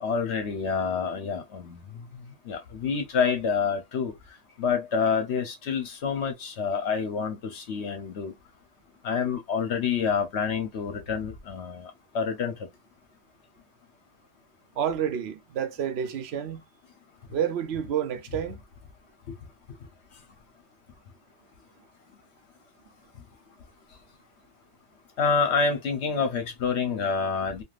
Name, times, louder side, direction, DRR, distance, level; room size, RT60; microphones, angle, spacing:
voice 1, 0.0-1.8 2.5-4.1 4.6-8.3 9.0-12.5 25.2-27.6, left 5 dB, 70° left, 1.0 m, -27 dB
voice 2, 14.7-16.6 17.3-18.6, right 9 dB, 65° right, 0.8 m, -29 dB
3.3 x 2.4 x 2.3 m
omnidirectional pair, 1.2 m